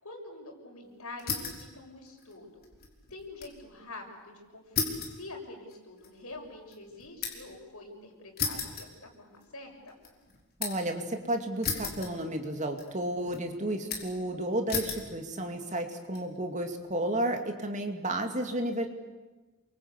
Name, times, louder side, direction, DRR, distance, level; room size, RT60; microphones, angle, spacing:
voice 1, 0.0-2.6 3.1-10.0, left 2 dB, 85° left, 2 dB, 6.6 m, -46 dB
sound 1, 1.2-1.7 2.1-3.6 3.9-4.0 4.7-7.6 8.4-9.5 9.9-10.9 11.6-12.5 12.8-13.4 13.9-14.3 14.7-15.1 15.8-16.2, left 5 dB, 45° left, 4.5 m, -35 dB
voice 2, 10.6-18.9, right 1 dB, 35° right, 5 dB, 2.6 m, -32 dB
29.0 x 24.0 x 8.4 m, 1.2 s
head